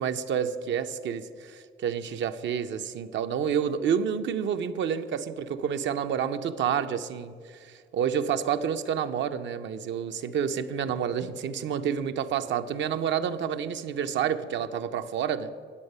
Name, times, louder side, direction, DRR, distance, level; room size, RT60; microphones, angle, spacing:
voice 1, 0.0-15.5, right 8 dB, 70° right, 9 dB, 0.6 m, -29 dB
9.8 x 7.9 x 5.4 m, 2.2 s
cardioid pair, 90°, 20 cm